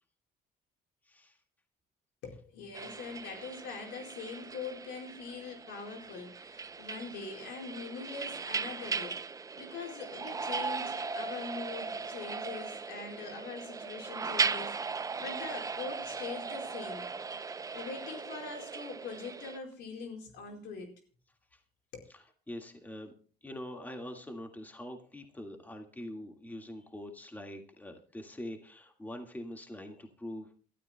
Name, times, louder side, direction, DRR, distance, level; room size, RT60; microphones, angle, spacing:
voice 1, 1.1-1.4 21.5-21.6 22.1-23.1 23.4-30.5, left 1 dB, 10° left, 1.8 m, -44 dB
voice 2, 2.2-17.1 17.7-20.9 21.9-22.1, left 5 dB, 80° left, 4.6 m, -43 dB
sound 1, 2.7-19.6, right 4 dB, 20° right, 0.5 m, -38 dB
28.5 x 12.5 x 2.2 m
cardioid pair, 110°, 17 cm